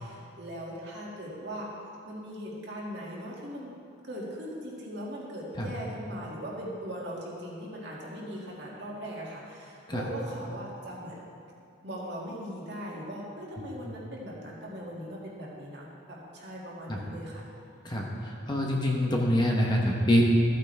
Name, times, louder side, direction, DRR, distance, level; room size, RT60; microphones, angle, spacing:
voice 1, 0.0-1.7 2.0-3.8 4.0-11.3 11.8-17.4, equal, 55° right, -4 dB, 2.1 m, -39 dB
voice 2, 17.8-20.2, equal, 20° left, -1 dB, 0.9 m, -25 dB
14.0 x 8.7 x 3.4 m, 2.5 s
head